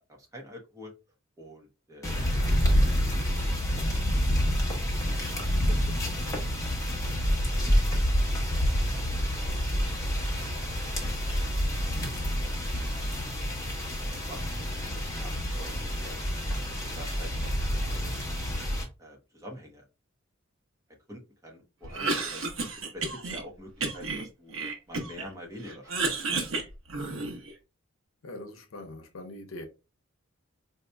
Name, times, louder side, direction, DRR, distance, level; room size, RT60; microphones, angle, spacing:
voice 1, 0.2-0.9 1.4-3.0 3.3-4.0 4.3-4.4 5.0-6.1 6.9-10.9 11.4-13.1 14.1-16.2 16.7-18.1 19.0-19.8 21.1-24.5 24.9-26.1, equal, 15° right, 0.9 m, -48 dB
sound 1, 2.0-18.8, equal, 15° left, 1.0 m, -28 dB
Cough, 21.8-23.4 23.8-25.3 25.6-27.5, right 3 dB, 90° right, 0.8 m, -32 dB
voice 2, 28.2-29.7, left 1 dB, 75° left, 0.6 m, -42 dB
4.0 x 2.7 x 2.2 m
head